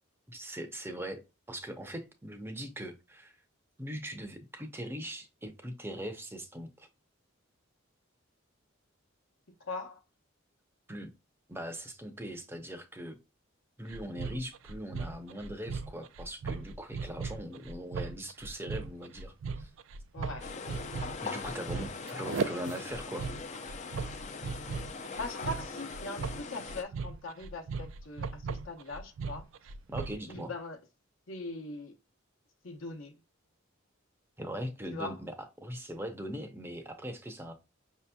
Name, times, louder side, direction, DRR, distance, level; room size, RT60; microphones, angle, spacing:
voice 1, 0.3-3.3 3.8-6.9 10.9-11.1 11.5-13.2 13.8-19.7 21.2-23.3 29.9-30.5 34.4-37.5, equal, 10° right, 0.6 m, -40 dB
voice 2, 9.6-10.0 20.1-20.5 21.7-21.9 25.2-29.5 30.3-30.8 31.3-31.9 32.6-33.2 34.9-35.2, left 2 dB, 75° left, 0.9 m, -41 dB
sound 1, 13.9-30.3, right 5 dB, 70° right, 0.4 m, -38 dB
sound 2, 20.4-26.8, left 4 dB, 35° left, 0.4 m, -41 dB
5.8 x 2.8 x 2.2 m
head